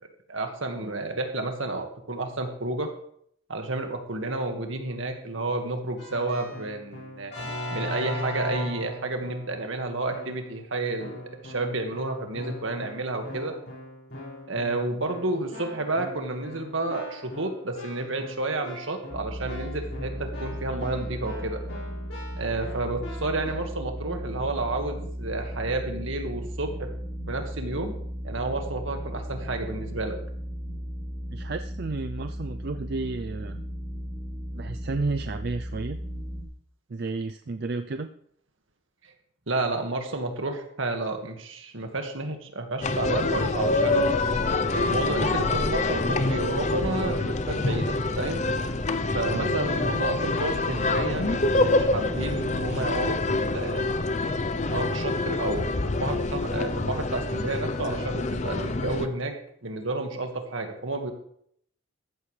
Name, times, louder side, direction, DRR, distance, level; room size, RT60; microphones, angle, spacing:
voice 1, 0.3-2.9 3.5-7.3 7.7-13.5 14.5-21.6 22.4-26.9 27.3-28.0 28.2-30.2 39.5-44.1 44.7-48.4 49.1-53.9 54.7-59.3 59.6-61.1, right 2 dB, 75° right, 4 dB, 1.9 m, -31 dB
Keyboard (musical), 6.0-9.6 10.1-10.6 11.0-23.5, left 1 dB, 60° left, 5.3 m, -39 dB
sound 1, 19.1-36.4, equal, ahead, 4.1 m, -36 dB
voice 2, 31.3-33.6 34.5-36.0 36.9-38.1 49.3-49.5, right 3 dB, 50° right, 8 dB, 0.4 m, -32 dB
sound 2, 42.8-59.1, left 2 dB, 35° left, 0.6 m, -26 dB
14.5 x 13.0 x 3.3 m, 0.69 s
head